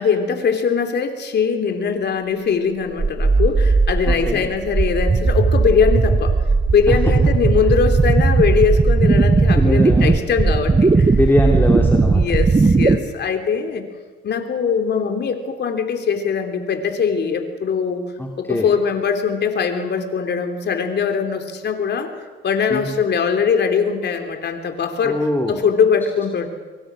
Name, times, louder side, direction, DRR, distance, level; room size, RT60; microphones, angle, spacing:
voice 1, 0.0-6.3 6.7-11.2 12.1-13.8 14.2-18.0 18.4-22.1 22.4-26.5, left 6 dB, 60° left, 6 dB, 3.5 m, -21 dB
sound 1, 3.0-13.0, right 4 dB, 25° right, 1.4 m, -16 dB
voice 2, 4.1-4.5 6.9-7.0 9.5-10.2 10.7-10.8 11.1-12.2 18.2-18.7 22.7-22.9 25.0-25.6, left 1 dB, 10° left, 0 dB, 2.9 m, -22 dB
25.0 x 23.5 x 6.4 m, 1.4 s
cardioid pair, 90°, 20 cm